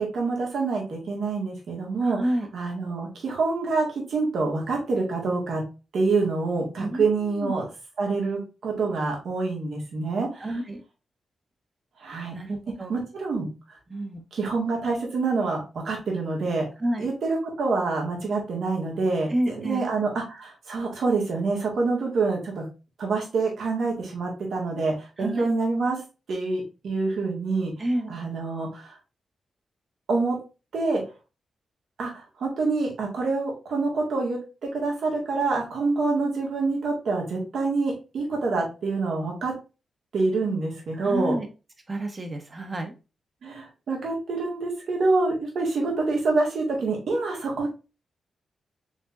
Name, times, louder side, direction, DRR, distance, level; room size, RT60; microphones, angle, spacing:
voice 1, 0.0-2.2 2.5-5.6 5.9-7.7 8.0-10.5 12.0-12.3 12.9-13.5 14.3-16.7 17.0-22.6 23.0-26.0 26.3-27.7 28.1-29.0 30.1-30.4 30.7-31.0 32.0-39.5 40.1-41.4 43.4-47.7, right 3 dB, 80° right, -1 dB, 1.9 m, -26 dB
voice 2, 2.0-2.5 6.8-7.5 10.3-10.8 12.3-12.9 13.9-14.2 16.8-17.0 19.3-19.8 25.2-25.5 27.8-28.1 41.0-41.5 41.9-42.9, right 1 dB, 35° right, 5 dB, 1.2 m, -29 dB
5.0 x 3.5 x 2.6 m, 0.30 s
cardioid pair, 70°, 0 cm